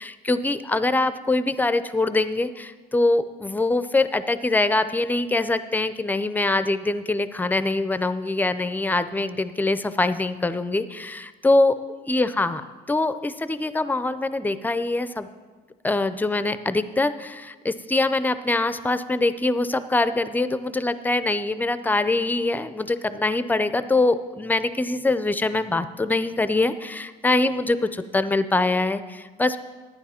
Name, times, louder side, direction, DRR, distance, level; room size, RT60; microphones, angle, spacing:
voice 1, 0.0-11.8 12.1-12.6 12.9-15.3 15.8-29.6, left 2 dB, 10° left, 13 dB, 0.5 m, -23 dB
11.5 x 9.8 x 4.3 m, 1.4 s
cardioid pair, 110°, 17 cm